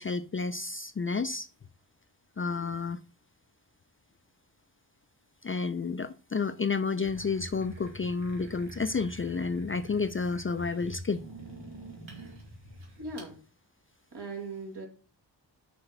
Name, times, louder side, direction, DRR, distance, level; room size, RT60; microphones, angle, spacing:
voice 1, 0.0-1.5 2.4-3.0 5.4-11.2, left 4 dB, 30° left, 0.4 m, -31 dB
sound 1, 7.0-13.3, equal, 85° right, 2.2 m, -46 dB
voice 2, 13.0-13.4 14.1-14.9, right 3 dB, 60° right, 2.5 m, -39 dB
6.1 x 5.0 x 6.5 m
cardioid pair, 45°, 45 cm